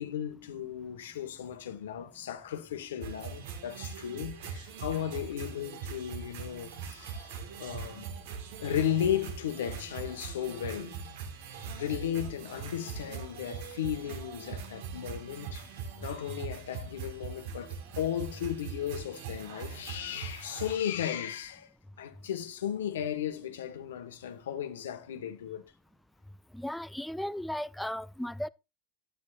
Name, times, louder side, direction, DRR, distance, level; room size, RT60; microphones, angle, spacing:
voice 1, 0.0-8.1 8.6-11.0 11.8-25.6, left 10 dB, 85° left, 1.2 m, -35 dB
sound 1, 3.0-20.8, right 6 dB, 70° right, 1.7 m, -41 dB
voice 2, 26.5-28.5, left 1 dB, 5° left, 0.4 m, -35 dB
9.8 x 9.2 x 2.4 m
hypercardioid pair, 100°, 0 cm